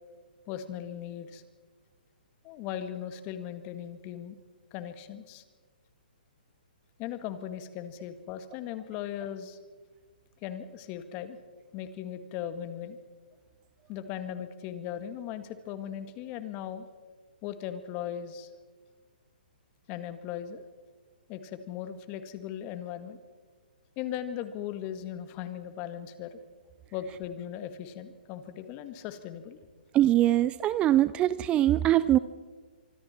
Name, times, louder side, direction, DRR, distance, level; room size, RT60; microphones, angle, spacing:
voice 1, 0.5-1.4 2.4-4.4 4.7-5.4 7.0-9.6 10.4-11.4 11.7-13.0 13.9-16.8 17.4-18.5 19.9-20.6 21.3-23.2 24.0-26.4 26.9-29.6, left 10 dB, 30° left, 10 dB, 1.9 m, -38 dB
voice 2, 29.9-32.2, right 13 dB, 20° right, 16 dB, 0.5 m, -22 dB
25.0 x 25.0 x 4.5 m, 1.4 s
hypercardioid pair, 135°, 5 cm